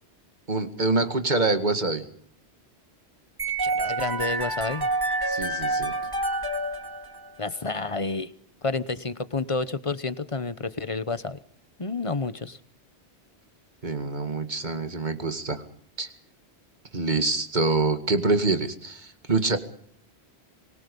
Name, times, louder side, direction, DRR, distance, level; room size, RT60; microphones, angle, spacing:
voice 1, 0.5-2.0 5.3-5.9 13.8-15.6 16.0-16.1 16.9-19.6, right 3 dB, 45° right, 7 dB, 2.2 m, -25 dB
sound 1, 3.4-7.5, right 2 dB, 20° right, 2.2 m, -28 dB
voice 2, 3.6-4.9 7.4-8.3 8.6-11.4 11.8-12.6, left 3 dB, 30° left, 13 dB, 1.0 m, -30 dB
25.5 x 20.5 x 5.4 m, 0.62 s
omnidirectional pair, 1.1 m